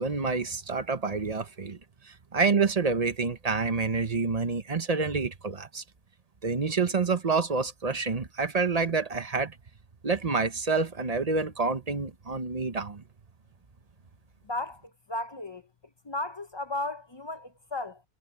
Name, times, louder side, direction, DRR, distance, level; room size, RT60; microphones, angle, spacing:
voice 1, 0.0-1.8 2.1-5.8 6.4-9.6 10.0-13.0, right 4 dB, 40° right, 1.1 m, -28 dB
voice 2, 14.4-15.6 16.0-18.0, left 2 dB, 35° left, 0.5 m, -35 dB
omnidirectional pair, 1.1 m